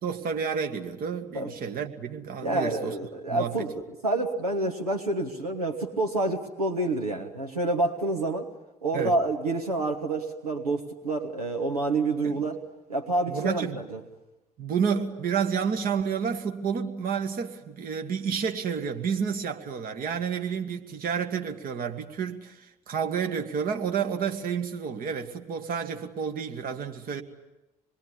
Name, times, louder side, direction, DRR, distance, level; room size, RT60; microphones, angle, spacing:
voice 1, 0.0-2.9 3.3-3.7 8.9-9.1 12.2-12.3 13.3-13.8 14.6-27.2, right 6 dB, 50° right, 2.0 m, -30 dB
voice 2, 2.4-3.7 4.0-8.5 8.8-12.6 12.9-14.0, right 2 dB, 85° right, 1.5 m, -28 dB
26.5 x 21.0 x 9.8 m
figure-of-eight pair, 50°, 19 cm